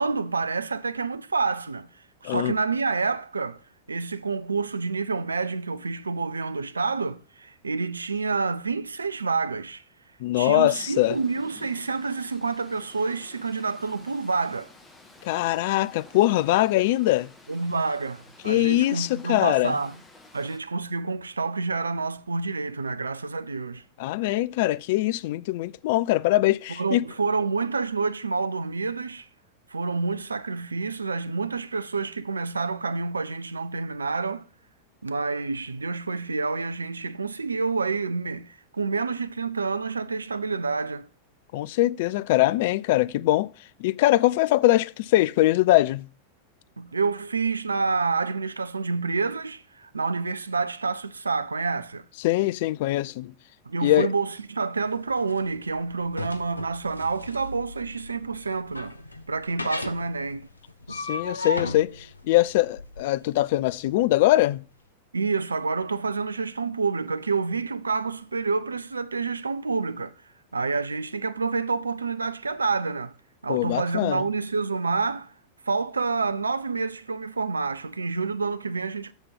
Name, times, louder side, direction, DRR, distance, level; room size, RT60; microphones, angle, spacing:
voice 1, 0.0-1.9 2.2-3.6 3.9-9.8 10.4-14.7 17.5-20.0 20.3-23.8 26.8-29.3 29.7-34.5 35.0-41.1 46.8-52.0 53.7-59.0 59.3-60.5 65.1-70.1 70.5-73.1 73.4-75.3 75.7-79.1, right 4 dB, 75° right, 0.5 m, -28 dB
voice 2, 10.2-11.2 15.2-17.3 18.4-19.8 24.0-27.1 41.5-43.5 43.8-46.1 52.2-53.3 53.8-54.1 60.9-64.6 73.5-74.2, left 16 dB, 50° left, 0.3 m, -22 dB
sound 1, 10.7-20.6, left 2 dB, 15° left, 1.7 m, -52 dB
sound 2, 54.8-64.3, left 2 dB, 85° left, 0.6 m, -36 dB
7.1 x 6.7 x 5.6 m
figure-of-eight pair, 90°, 0 cm